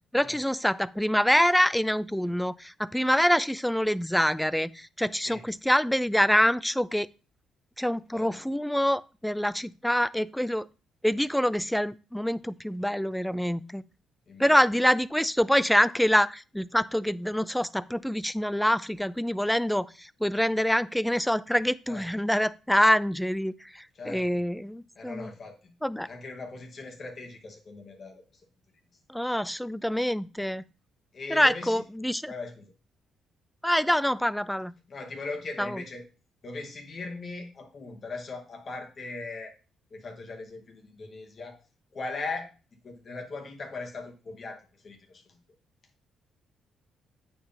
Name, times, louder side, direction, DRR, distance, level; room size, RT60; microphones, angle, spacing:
voice 1, 0.1-7.1 7.8-10.7 11.0-13.8 14.4-25.3 25.8-26.1 29.1-30.6 31.3-32.3 33.6-34.7 35.6-35.8, equal, 5° left, 18 dB, 0.4 m, -25 dB
voice 2, 8.1-8.4 14.3-14.6 21.9-22.1 23.9-24.4 25.0-25.7 26.0-28.2 29.3-29.4 31.1-31.8 32.3-32.7 34.9-36.1 36.4-39.5 39.9-41.6 41.9-42.5 42.8-45.4, left 3 dB, 45° left, 2 dB, 2.0 m, -39 dB
9.0 x 4.6 x 3.6 m, 0.34 s
cardioid pair, 90°, 0 cm